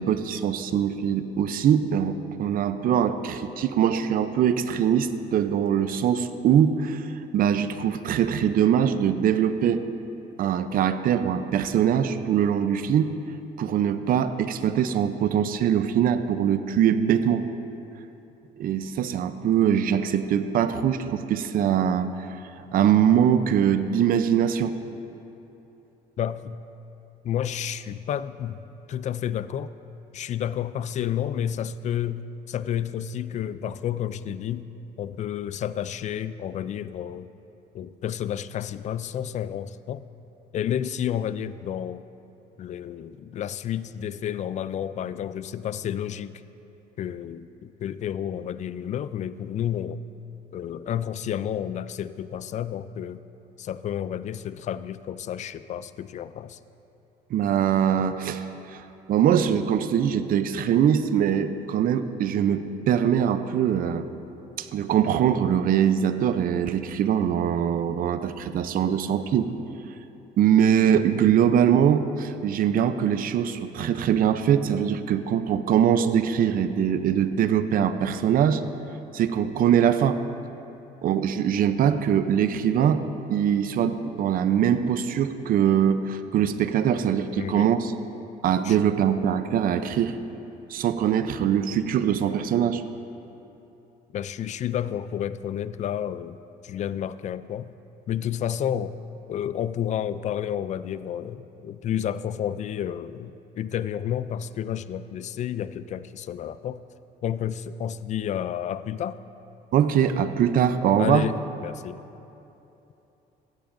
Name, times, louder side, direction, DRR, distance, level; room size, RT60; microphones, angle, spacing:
voice 1, 0.0-9.8 10.4-13.1 13.6-17.5 18.6-22.1 22.7-24.8 57.3-58.4 58.7-58.8 59.1-64.1 64.6-69.5 70.4-78.6 79.1-80.2 81.0-83.0 83.3-87.9 88.4-90.1 90.7-92.8 109.7-111.3, right 9 dB, 60° right, 11 dB, 0.6 m, -22 dB
voice 2, 26.2-26.6 27.2-28.6 28.9-29.7 30.1-37.3 37.7-40.1 40.5-42.0 42.6-46.4 47.0-50.0 50.5-53.2 53.6-56.6 87.3-87.7 88.6-88.8 94.1-96.4 96.6-97.7 98.1-99.0 99.3-106.8 107.2-109.2 111.0-112.0, left 10 dB, 45° left, 15 dB, 0.4 m, -30 dB
15.5 x 12.5 x 2.6 m, 3.0 s
cardioid pair, 110°, 17 cm